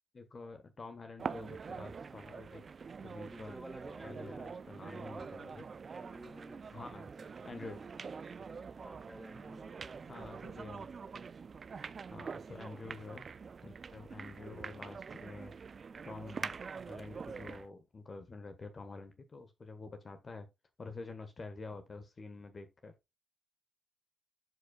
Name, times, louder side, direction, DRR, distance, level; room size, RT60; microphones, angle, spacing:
voice 1, 0.1-2.6 3.0-3.6 4.0-5.7 6.7-7.1 7.4-7.8 10.1-10.9 12.1-15.5 16.0-16.6 16.9-20.5 20.8-22.9, left 3 dB, 40° left, 1.4 m, -48 dB
sound 1, 1.2-17.7, right 5 dB, 45° right, 0.4 m, -45 dB
voice 2, 3.2-5.4 5.9-6.7 7.1-8.0 8.8-10.1, right 1 dB, 10° right, 2.3 m, -52 dB
11.5 x 5.3 x 2.3 m
cardioid pair, 100°, 0 cm